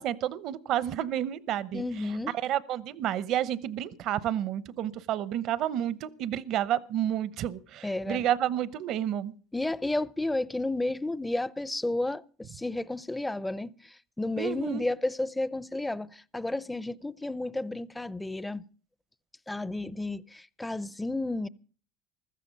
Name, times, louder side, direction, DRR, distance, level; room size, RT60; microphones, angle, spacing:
voice 1, 0.0-1.8 2.4-9.3 14.4-14.8, right 11 dB, 60° right, 0.8 m, -30 dB
voice 2, 1.7-2.4 7.8-8.2 9.5-18.6 19.5-21.5, left 2 dB, 10° left, 0.6 m, -32 dB
15.0 x 13.5 x 5.3 m
supercardioid pair, 85°, 0 cm